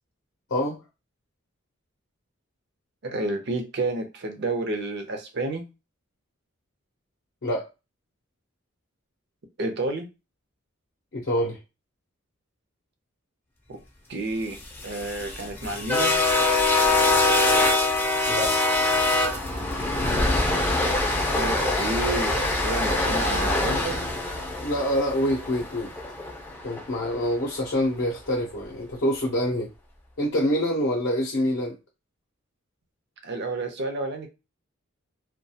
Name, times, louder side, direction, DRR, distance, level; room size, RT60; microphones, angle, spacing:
voice 1, 3.0-5.7 9.6-10.1 13.7-13.8 14.1-16.2 21.3-24.0 33.2-34.3, right 2 dB, 55° right, 0.6 m, -30 dB
voice 2, 11.1-11.6 18.3-18.6 24.6-25.9 26.6-29.7 30.2-31.7, equal, 60° left, 0.6 m, -26 dB
sound 1, 14.6-26.8, left 2 dB, 10° left, 0.4 m, -24 dB
2.3 x 2.1 x 2.7 m
head